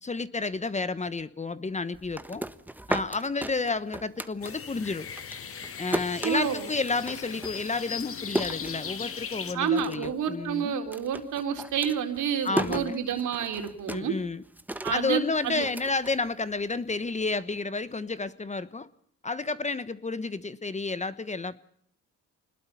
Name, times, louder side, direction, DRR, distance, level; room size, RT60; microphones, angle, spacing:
voice 1, 0.0-2.4 2.9-5.1 5.8-10.7 12.4-13.0 13.9-14.4 14.9-18.9 19.2-21.6, left 3 dB, 25° left, 1.2 m, -31 dB
sound 1, 1.9-4.9 5.2-9.3 9.6-10.2 10.5-16.8, right 1 dB, 5° right, 1.2 m, -35 dB
sound 2, 4.4-9.5, left 7 dB, 50° left, 2.1 m, -38 dB
voice 2, 6.2-6.7 9.5-14.2 14.8-15.7, right 7 dB, 75° right, 4.0 m, -29 dB
26.0 x 20.5 x 5.6 m
cardioid pair, 90°, 30 cm